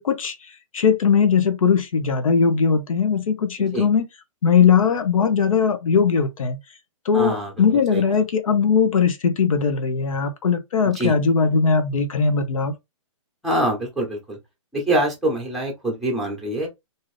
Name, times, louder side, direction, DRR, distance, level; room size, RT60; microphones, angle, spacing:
voice 1, 0.0-4.1 4.4-6.6 7.0-12.7, left 6 dB, 85° left, 0.6 m, -19 dB
voice 2, 7.1-7.5 7.9-8.0 11.0-11.1 13.4-14.4 14.7-16.7, right 1 dB, ahead, 0.8 m, -24 dB
2.7 x 2.5 x 3.2 m
hypercardioid pair, 160°, 17 cm